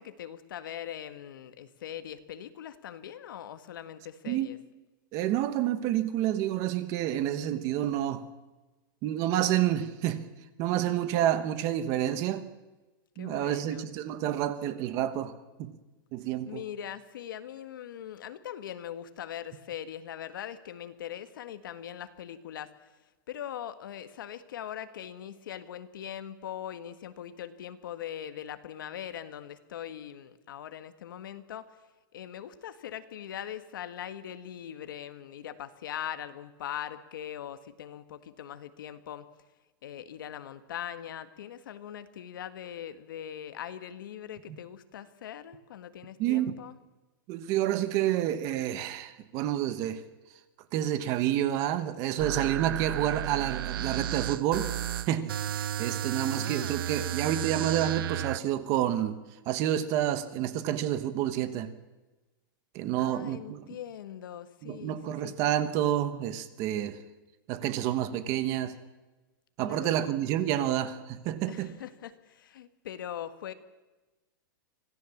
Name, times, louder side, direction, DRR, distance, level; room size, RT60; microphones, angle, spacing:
voice 1, 0.0-4.6 13.2-13.9 16.5-22.7 23.3-31.8 32.1-39.3 39.8-46.8 56.4-56.6 63.0-65.3 69.6-70.1 71.5-73.5, left 10 dB, 70° left, 1.7 m, -41 dB
voice 2, 5.1-8.2 9.0-10.2 10.6-12.5 13.2-15.3 15.6-15.7 16.1-16.6 46.2-46.5 47.3-50.0 50.7-54.7 55.1-59.2 59.5-61.7 62.7-63.6 64.6-67.0 67.5-68.8 69.6-71.8, right 12 dB, 25° right, 1.2 m, -29 dB
sound 1, 52.2-58.4, right 11 dB, 85° right, 0.6 m, -33 dB
25.5 x 17.0 x 7.3 m
supercardioid pair, 180°, 12 cm